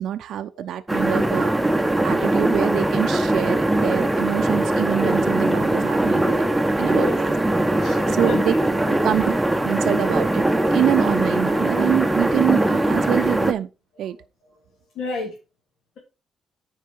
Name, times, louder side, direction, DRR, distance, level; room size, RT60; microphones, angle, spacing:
voice 1, 0.0-1.5 2.0-7.1 8.1-8.5 9.0-9.2 9.6-13.7 14.0-14.2, right 10 dB, 75° right, 0.5 m, -25 dB
sound 1, 0.9-13.5, right 1 dB, 10° right, 0.8 m, -21 dB
voice 2, 6.7-7.1 7.7-8.6 8.9-9.1 14.0-14.2 14.9-15.4, left 4 dB, 65° left, 2.4 m, -31 dB
9.5 x 4.7 x 4.6 m
cardioid pair, 90°, 0 cm